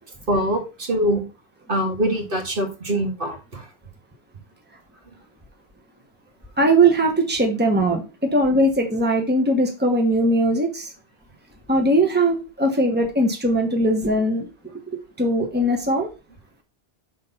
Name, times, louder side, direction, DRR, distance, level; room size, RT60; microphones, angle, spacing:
voice 1, 0.3-1.2 1.7-3.7, equal, 60° right, 2 dB, 1.8 m, -23 dB
voice 2, 6.6-10.9 11.7-14.5 15.2-16.1, right 1 dB, 10° right, 2 dB, 1.3 m, -20 dB
6.4 x 4.2 x 5.3 m, 0.30 s
omnidirectional pair, 1.0 m